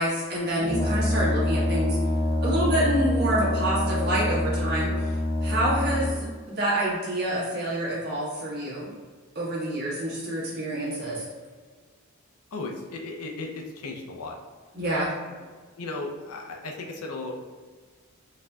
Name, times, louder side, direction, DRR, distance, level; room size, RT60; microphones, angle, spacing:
voice 1, 0.0-2.0 2.4-4.9 5.4-8.9 9.3-11.2 14.7-15.1, right 1 dB, 45° right, -7 dB, 1.2 m, -27 dB
Brass instrument, 0.6-6.4, left 1 dB, 35° left, 0.8 m, -26 dB
voice 2, 12.5-14.4 15.8-17.3, left 3 dB, 80° left, 1 dB, 0.5 m, -35 dB
4.1 x 2.7 x 2.3 m, 1.5 s
head